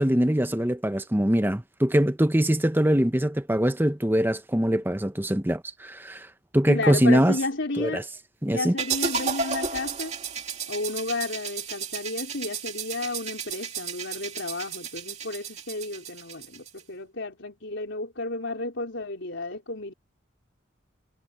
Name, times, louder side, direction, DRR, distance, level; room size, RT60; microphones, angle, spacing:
voice 1, 0.0-6.3 6.5-7.4 7.8-8.0 8.4-8.7, equal, 10° right, 0.9 m, -23 dB
voice 2, 6.7-8.0 8.5-10.1 10.7-19.9, left 2 dB, 70° left, 4.2 m, -32 dB
sound 1, 8.8-16.8, right 5 dB, 35° right, 2.5 m, -33 dB
head